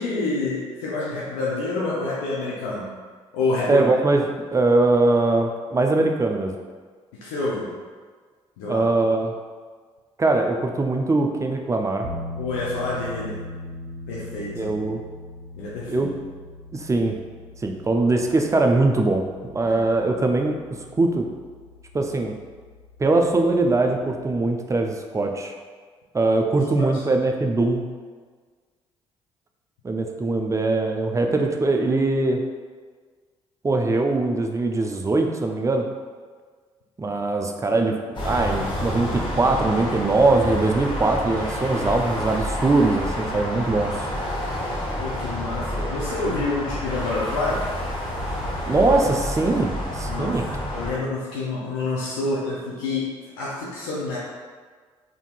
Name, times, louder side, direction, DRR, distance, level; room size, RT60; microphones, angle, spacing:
voice 1, 0.0-2.9 3.3-3.9 7.2-7.7 8.6-8.9 12.4-13.4 14.1-14.7 15.5-16.1 19.7-19.8 26.8-27.0 45.0-47.6 50.1-50.3 50.7-54.2, left 3 dB, 75° left, -6 dB, 0.5 m, -28 dB
voice 2, 3.7-4.2 4.5-6.6 8.7-9.3 10.2-12.1 14.6-15.0 15.9-16.1 16.7-17.2 17.6-20.6 20.9-21.3 21.9-22.4 23.0-25.5 26.1-27.9 29.8-32.4 33.6-35.9 37.0-43.9 48.7-50.4, right 2 dB, 20° right, 3 dB, 0.4 m, -21 dB
sound 1, 12.0-24.4, left 2 dB, 85° right, 0.5 m, -40 dB
sound 2, 38.1-50.9, left 1 dB, 35° left, 1.0 m, -29 dB
3.6 x 2.6 x 2.3 m, 1.5 s
hypercardioid pair, 45°, 15 cm